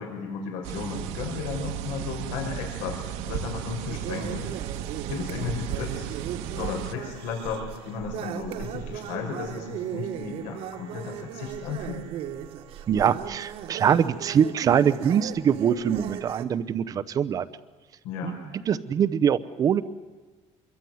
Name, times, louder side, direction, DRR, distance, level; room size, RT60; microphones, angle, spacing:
voice 1, 0.0-4.5 5.1-6.0 6.4-12.1 18.0-18.4, left 6 dB, 80° left, 2 dB, 5.8 m, -34 dB
sound 1, 0.6-6.9, right 10 dB, 70° right, 1.6 m, -34 dB
sound 2, 3.9-16.4, right 10 dB, 55° right, 1.6 m, -37 dB
voice 2, 12.9-17.5 18.2-19.8, right 8 dB, 30° right, 16 dB, 0.8 m, -23 dB
26.0 x 23.0 x 9.5 m, 1.3 s
cardioid pair, 165°, 12 cm